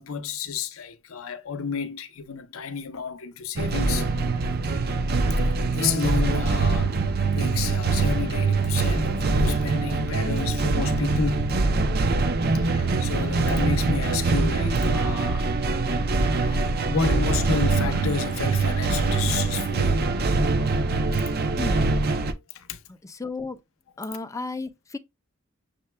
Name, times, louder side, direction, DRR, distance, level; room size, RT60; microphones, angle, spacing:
voice 1, 0.0-4.1 5.3-6.9 7.3-11.6 12.5-15.5 16.3-16.6 16.9-20.1 22.5-22.8, left 5 dB, 85° left, 0.7 m, -31 dB
sound 1, 3.6-22.3, right 3 dB, 50° right, 0.5 m, -23 dB
sound 2, 7.1-16.5, equal, 30° right, 0.9 m, -45 dB
voice 2, 22.9-23.6 24.0-25.0, left 3 dB, 15° left, 0.5 m, -33 dB
6.5 x 2.2 x 3.2 m
head